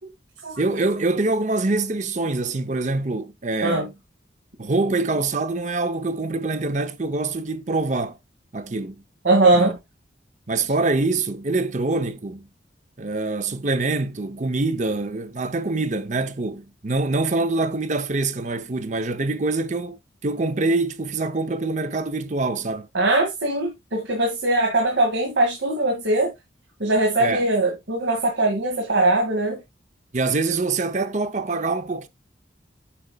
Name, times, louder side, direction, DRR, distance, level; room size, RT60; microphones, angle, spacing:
voice 1, 0.6-3.9 4.6-8.2 8.5-9.0 9.5-9.7 10.5-12.5 13.0-22.9 27.2-27.5 30.1-32.1, right 3 dB, 40° right, 0.7 m, -25 dB
voice 2, 9.2-9.8 22.9-26.3 26.8-29.6, right 2 dB, 85° right, 2.0 m, -21 dB
8.5 x 6.6 x 2.3 m
head